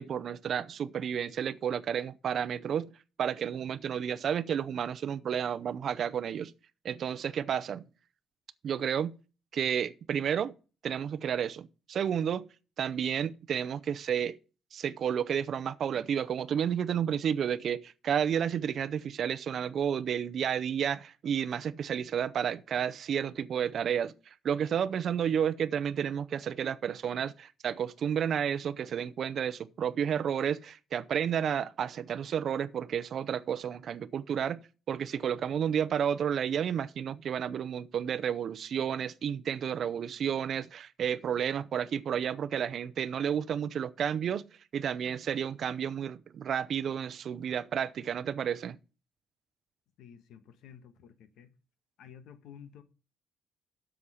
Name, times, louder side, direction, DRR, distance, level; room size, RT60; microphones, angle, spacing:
voice 1, 0.0-2.9 3.2-6.5 6.8-7.8 8.6-9.2 9.5-10.5 10.8-12.4 12.8-14.3 14.7-34.6 34.9-44.4 44.7-48.8, right 8 dB, 45° right, 0.6 m, -31 dB
voice 2, 50.0-51.5 52.0-52.8, left 8 dB, 80° left, 1.4 m, -52 dB
8.0 x 7.1 x 5.6 m
cardioid pair, 155°, 0 cm